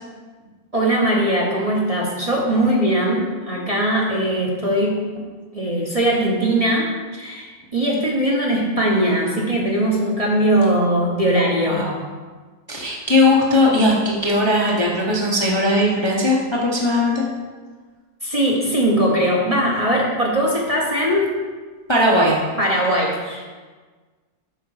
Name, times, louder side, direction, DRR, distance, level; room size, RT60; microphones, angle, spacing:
voice 1, 0.7-5.0 5.5-11.9 18.2-21.3 22.6-23.4, right 1 dB, 25° right, -4 dB, 1.1 m, -20 dB
voice 2, 12.7-17.2 21.9-22.4, left 1 dB, 20° left, -3 dB, 0.9 m, -18 dB
7.8 x 5.8 x 4.9 m, 1.4 s
omnidirectional pair, 1.6 m